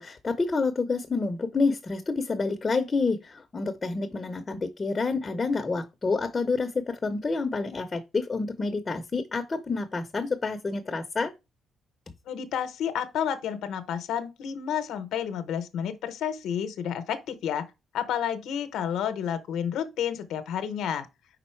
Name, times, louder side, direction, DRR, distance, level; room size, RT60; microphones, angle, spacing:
voice 1, 0.0-11.3, left 4 dB, 30° left, 0.7 m, -28 dB
voice 2, 12.3-17.7 17.9-21.1, left 8 dB, 80° left, 0.8 m, -30 dB
5.3 x 3.9 x 4.5 m
cardioid pair, 90°, 0 cm